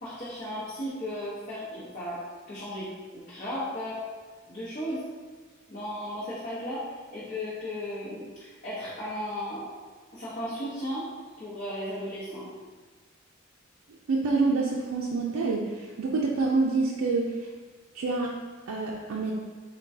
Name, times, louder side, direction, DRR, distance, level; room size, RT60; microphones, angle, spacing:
voice 1, 0.0-2.2 2.5-4.0 4.5-5.0 5.7-9.7 10.1-11.1 11.4-12.5, equal, 40° left, -11 dB, 0.9 m, -35 dB
voice 2, 14.1-17.5 17.9-18.3 18.7-19.3, right 3 dB, 90° right, -2 dB, 0.4 m, -27 dB
5.9 x 2.2 x 2.7 m, 1.4 s
head